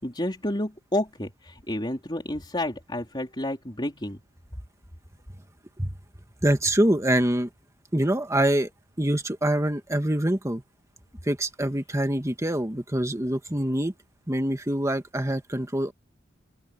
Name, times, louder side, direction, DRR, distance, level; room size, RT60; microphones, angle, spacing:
voice 1, 0.0-4.2, left 1 dB, 25° left, 4.1 m, -30 dB
voice 2, 6.4-7.5 7.9-8.7 9.0-10.6 11.3-13.9 14.3-15.9, right 1 dB, 15° right, 1.8 m, -25 dB
open air
head